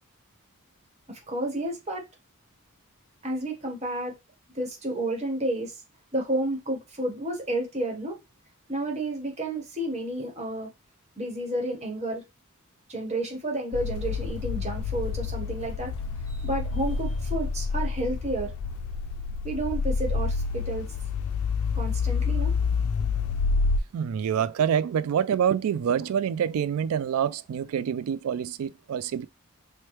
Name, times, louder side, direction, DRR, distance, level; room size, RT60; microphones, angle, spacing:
voice 1, 1.1-2.1 3.2-4.1 4.5-5.8 6.1-8.2 8.7-10.7 11.2-12.2 12.9-15.9 16.3-18.5 19.4-20.9 21.7-22.5, right 1 dB, 30° right, 1.2 m, -31 dB
sound 1, 13.7-23.8, left 4 dB, 85° left, 0.3 m, -28 dB
voice 2, 23.9-29.3, right 8 dB, 85° right, 0.3 m, -26 dB
4.5 x 2.2 x 3.1 m
head